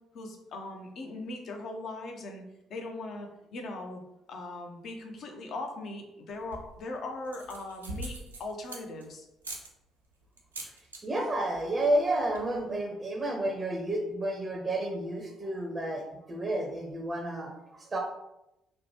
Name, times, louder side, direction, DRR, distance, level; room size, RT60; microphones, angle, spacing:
voice 1, 0.1-2.4 2.7-4.0 4.3-9.3, left 2 dB, 50° left, 3 dB, 0.5 m, -39 dB
sound 1, 6.3-6.8 7.2-9.0 9.4-9.7 10.4-11.0 11.3-11.6 11.9-12.0 12.2-12.6, right 1 dB, 85° right, 0.3 m, -42 dB
voice 2, 11.0-18.0, right 1 dB, 25° right, 1 dB, 0.5 m, -31 dB
2.9 x 2.1 x 2.7 m, 0.88 s
figure-of-eight pair, 45°, 0 cm